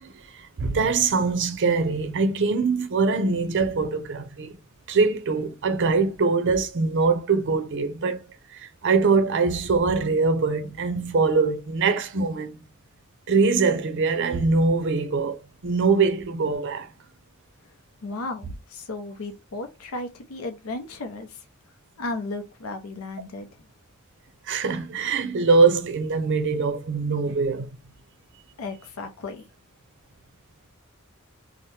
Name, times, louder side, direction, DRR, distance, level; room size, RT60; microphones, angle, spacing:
voice 1, 0.0-4.6 4.9-8.2 8.5-12.5 13.3-16.9 24.5-27.7, right 4 dB, 60° right, 0.5 m, -23 dB
voice 2, 18.0-21.4 22.0-23.5 28.6-29.4, left 2 dB, 85° left, 0.6 m, -34 dB
2.8 x 2.1 x 3.2 m
head